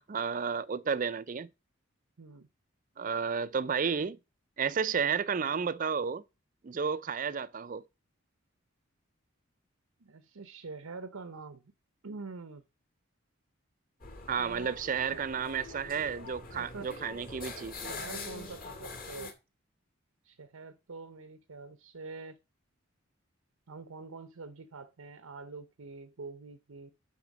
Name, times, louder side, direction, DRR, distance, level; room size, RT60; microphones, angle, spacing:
voice 1, 0.0-1.5 3.0-4.2 4.6-6.2 6.6-7.8 14.3-17.9, right 6 dB, 40° right, 0.4 m, -32 dB
voice 2, 2.2-2.5 10.0-11.6 12.0-12.6 14.3-15.2 16.5-17.0 17.7-19.3 20.2-22.4 23.7-26.9, right 4 dB, 90° right, 0.8 m, -45 dB
sound 1, 14.0-19.3, left 3 dB, 40° left, 2.2 m, -44 dB
9.4 x 4.4 x 6.0 m
head